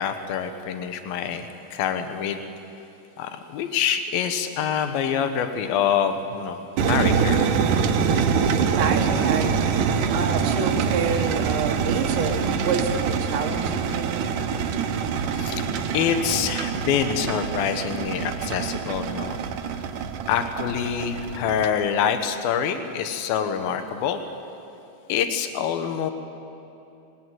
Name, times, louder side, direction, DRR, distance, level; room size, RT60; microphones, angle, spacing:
voice 1, 0.0-2.4 3.2-7.5 15.3-15.6 15.9-19.4 19.7-19.8 20.3-24.2 25.1-26.1, left 8 dB, 80° left, 8 dB, 2.9 m, -26 dB
sound 1, 6.8-21.7, right 6 dB, 70° right, 2.4 m, -25 dB
voice 2, 8.0-14.2, right 5 dB, 85° right, 1 dB, 3.3 m, -29 dB
20.5 x 18.0 x 9.2 m, 2.7 s
omnidirectional pair, 4.2 m